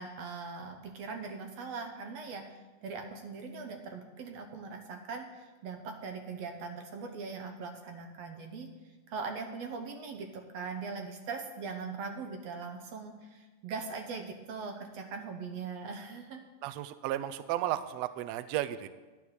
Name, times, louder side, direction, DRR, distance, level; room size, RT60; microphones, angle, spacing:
voice 1, 0.0-8.7 9.1-16.4, right 4 dB, 65° right, 5 dB, 1.9 m, -41 dB
voice 2, 16.6-18.9, right 13 dB, 85° right, 13 dB, 1.5 m, -34 dB
12.0 x 8.9 x 6.5 m, 1.2 s
omnidirectional pair, 3.6 m